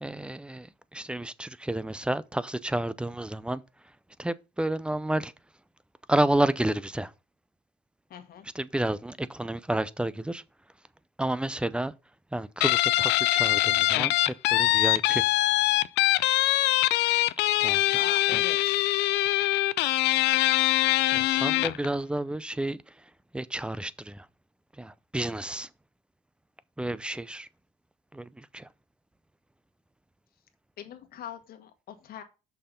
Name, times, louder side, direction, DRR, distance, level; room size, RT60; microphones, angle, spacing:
voice 1, 0.0-3.6 4.2-5.3 6.1-7.1 8.5-10.4 11.2-11.9 12.3-15.3 17.6-17.9 18.3-18.4 21.1-22.8 23.3-24.3 24.8-25.7 26.8-27.5 28.1-28.7, right 1 dB, 5° right, 0.5 m, -30 dB
voice 2, 8.1-8.5 17.9-19.0 30.8-32.2, left 9 dB, 60° left, 1.8 m, -42 dB
Guitar, 12.6-21.9, left 17 dB, 85° left, 0.5 m, -23 dB
6.7 x 5.7 x 5.2 m
cardioid pair, 110°, 17 cm